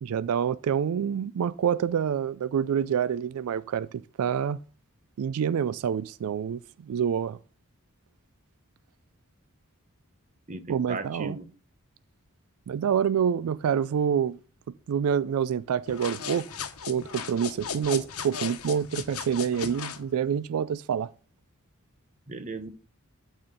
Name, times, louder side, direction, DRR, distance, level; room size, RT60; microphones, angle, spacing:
voice 1, 0.0-3.9 4.2-4.6 5.2-7.4 10.7-11.4 12.7-14.4 14.9-16.5 16.9-21.1, right 8 dB, 80° right, 0.3 m, -27 dB
voice 2, 10.5-11.5 22.3-22.7, right 3 dB, 35° right, 0.9 m, -36 dB
sound 1, 15.9-20.0, left 6 dB, 85° left, 1.1 m, -36 dB
12.0 x 4.3 x 5.1 m
head